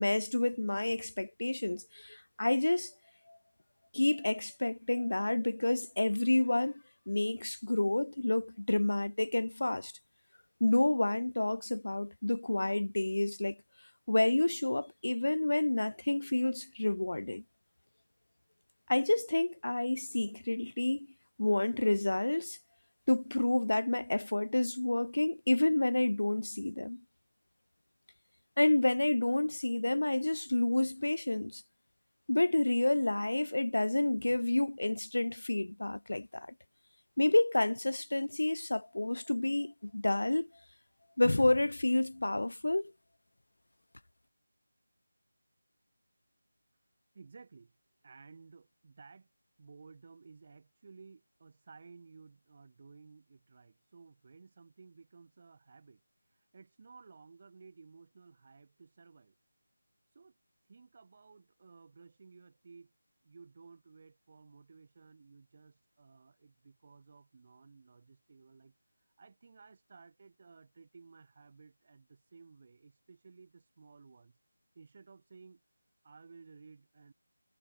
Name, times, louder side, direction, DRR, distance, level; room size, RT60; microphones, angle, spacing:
voice 1, 0.0-2.9 3.3-3.4 3.9-9.9 10.6-13.6 14.1-17.4 18.9-21.1 21.4-22.6 23.1-27.0 28.6-31.6 32.3-36.5 37.2-40.5 41.2-42.9, left 2 dB, 70° left, 0.6 m, -29 dB
voice 2, 47.1-47.8 48.0-49.3 49.6-59.3 60.1-60.4 60.6-62.9 63.2-74.4 74.8-75.6 76.0-77.1, right 4 dB, 35° right, 3.6 m, -56 dB
figure-of-eight pair, 165°, 0 cm